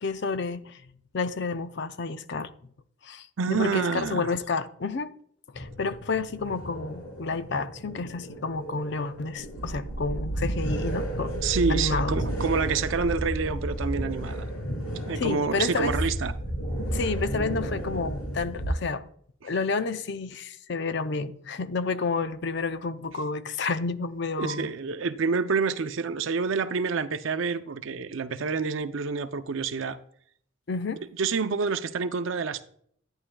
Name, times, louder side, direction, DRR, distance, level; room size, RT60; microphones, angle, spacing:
voice 1, 0.0-2.7 3.0-5.1 5.5-12.1 15.2-15.9 16.9-19.0 19.4-24.7 30.7-31.0, left 4 dB, 55° left, 0.5 m, -30 dB
voice 2, 3.4-4.3 11.4-14.5 15.1-16.3 24.4-30.0 31.2-32.6, right 5 dB, 65° right, 0.5 m, -28 dB
sound 1, 5.5-18.7, right 1 dB, 80° left, 2.4 m, -32 dB
11.0 x 9.7 x 2.3 m
head